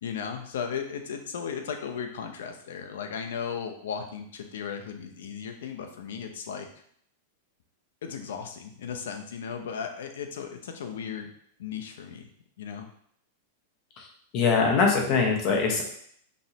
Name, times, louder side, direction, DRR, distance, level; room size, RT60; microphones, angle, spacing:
voice 1, 0.0-6.7 8.0-11.3 11.6-12.3 12.6-12.9, left 7 dB, 80° left, 5 dB, 0.7 m, -36 dB
voice 2, 14.3-15.8, left 5 dB, 45° left, 1 dB, 1.2 m, -22 dB
5.3 x 3.1 x 2.9 m, 0.65 s
hypercardioid pair, 125°, 0 cm